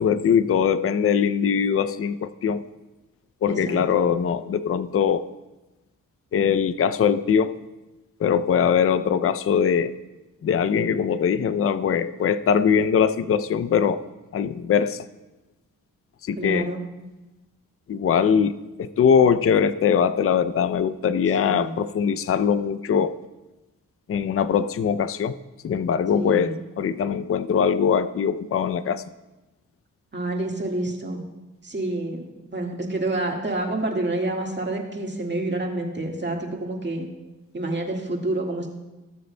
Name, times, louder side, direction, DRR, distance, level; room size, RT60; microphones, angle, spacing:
voice 1, 0.0-2.6 3.4-5.3 6.3-7.6 8.2-10.0 10.4-14.0 14.3-15.1 16.2-16.7 17.9-23.2 24.1-25.4 25.6-29.0, left 7 dB, 40° left, 13 dB, 0.5 m, -22 dB
voice 2, 3.5-4.0 16.4-16.8 21.4-21.8 26.2-26.6 30.1-31.2 31.6-32.2 32.5-37.1 37.5-38.7, right 2 dB, 30° right, 1 dB, 1.8 m, -28 dB
17.0 x 6.7 x 2.2 m, 1.1 s
cardioid pair, 55°, 35 cm